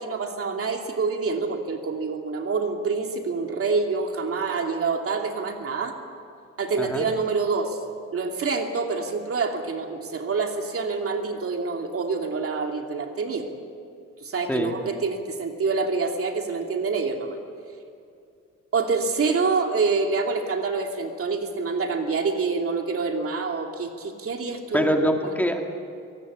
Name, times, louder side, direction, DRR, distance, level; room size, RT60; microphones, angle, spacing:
voice 1, 0.0-6.0 6.6-7.8 8.1-13.5 14.2-17.4 18.7-24.9, right 4 dB, 50° right, 3 dB, 2.8 m, -26 dB
voice 2, 24.7-25.6, equal, 5° left, 3 dB, 2.3 m, -23 dB
23.0 x 18.0 x 8.6 m, 2.4 s
cardioid pair, 90°, 30 cm